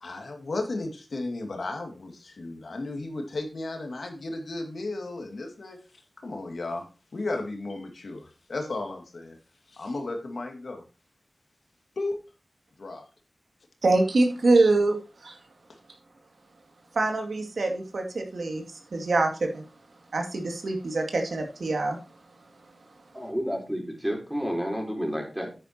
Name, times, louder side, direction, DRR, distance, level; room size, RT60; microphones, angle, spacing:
voice 1, 0.0-5.8 6.2-6.9 7.1-9.4 9.7-10.8 12.0-12.2 12.8-13.0, left 2 dB, 75° left, 3 dB, 2.3 m, -34 dB
voice 2, 13.8-15.0 15.2-15.4 16.9-19.6 20.1-22.0, right 2 dB, 80° right, 3 dB, 2.4 m, -24 dB
voice 3, 23.1-25.5, equal, 5° right, 1 dB, 4.1 m, -30 dB
9.8 x 9.2 x 2.9 m, 0.33 s
wide cardioid pair, 75°, 0 cm